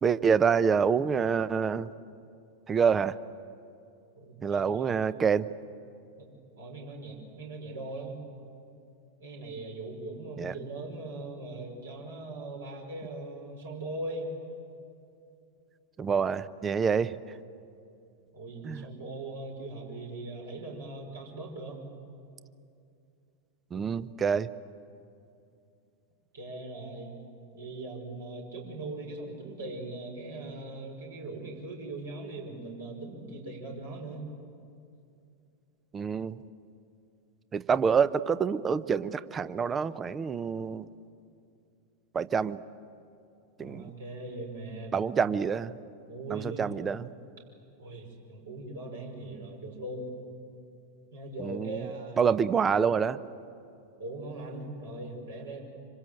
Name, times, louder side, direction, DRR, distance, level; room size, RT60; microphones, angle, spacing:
voice 1, 0.0-1.9 2.7-3.2 4.4-5.5 10.4-10.5 16.0-17.1 18.6-18.9 23.7-24.5 35.9-36.4 37.5-40.9 42.1-42.6 43.6-43.9 44.9-45.7 46.3-47.1 51.4-51.9 52.2-53.2, right 6 dB, 20° right, 16 dB, 0.8 m, -27 dB
voice 2, 4.2-4.9 6.2-6.3 6.6-8.2 9.2-14.3 18.3-21.9 26.3-27.1 27.5-34.2 43.6-45.0 46.1-46.7 47.8-50.1 51.1-52.4 54.0-55.6, right 2 dB, 65° right, 0 dB, 5.5 m, -40 dB
26.0 x 26.0 x 7.8 m, 2.5 s
figure-of-eight pair, 90°, 0 cm